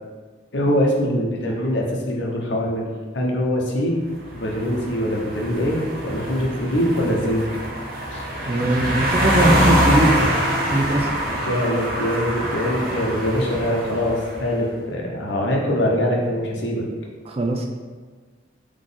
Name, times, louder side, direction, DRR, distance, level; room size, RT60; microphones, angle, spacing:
voice 1, 0.5-2.9 3.1-4.0 4.3-7.4 8.1-8.2 11.3-16.8, equal, 70° left, -2 dB, 0.9 m, -23 dB
sound 1, 4.2-14.5, equal, 50° right, 0.8 m, -24 dB
voice 2, 8.5-10.1 10.7-11.1 17.3-17.7, right 1 dB, 30° right, 1 dB, 0.4 m, -20 dB
3.9 x 3.1 x 3.9 m, 1.4 s
head